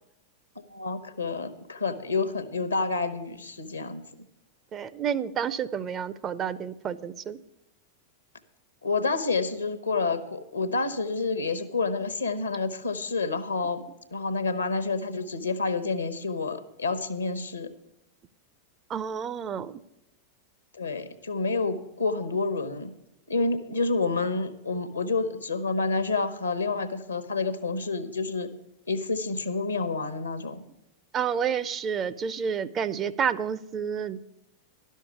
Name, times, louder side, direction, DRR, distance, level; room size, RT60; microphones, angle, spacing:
voice 1, 0.7-4.0 8.8-13.9 14.1-17.7 20.8-22.9 23.3-28.5 28.9-30.6, left 3 dB, 80° left, 10 dB, 0.9 m, -29 dB
voice 2, 4.7-7.4 18.9-19.8 31.1-34.2, right 7 dB, 25° right, 14 dB, 0.5 m, -30 dB
11.5 x 6.4 x 8.3 m, 0.86 s
figure-of-eight pair, 90°, 0 cm